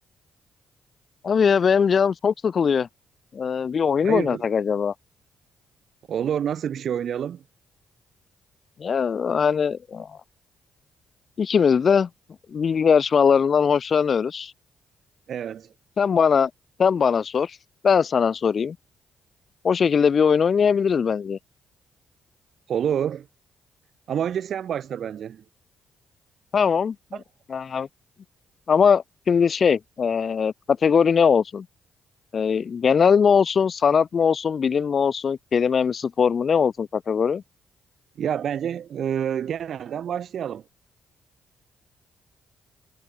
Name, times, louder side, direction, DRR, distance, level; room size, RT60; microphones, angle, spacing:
voice 1, 1.2-2.9 3.3-4.9 8.8-10.1 11.4-12.1 12.5-14.5 16.0-16.5 16.8-17.6 17.8-18.8 19.6-21.4 26.5-26.9 27.5-27.9 28.7-31.7 32.3-37.4, left 6 dB, 55° left, 0.5 m, -20 dB
voice 2, 4.0-4.4 6.1-7.4 15.3-15.7 22.7-23.3 24.1-25.4 27.1-27.2 38.2-40.6, right 9 dB, 65° right, 1.4 m, -28 dB
supercardioid pair, 55°, 0 cm